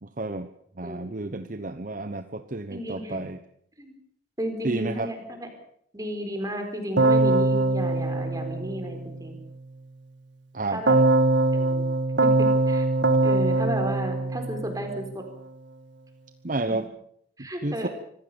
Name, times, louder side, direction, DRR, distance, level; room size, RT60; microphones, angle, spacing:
voice 1, 0.0-0.5 0.8-3.4 4.6-5.1 10.5-10.8 16.4-16.9 17.4-17.9, right 2 dB, 45° right, 10 dB, 1.0 m, -31 dB
voice 2, 2.7-3.2 3.8-3.9 4.4-5.5 5.9-9.4 10.7-11.0 11.5-11.9 12.4-12.8 13.2-15.2 17.4-17.9, equal, 20° right, 5 dB, 4.4 m, -33 dB
Keyboard (musical), 7.0-9.3 10.9-15.1, right 2 dB, 70° right, 1.9 m, -22 dB
25.0 x 16.0 x 7.0 m, 0.69 s
head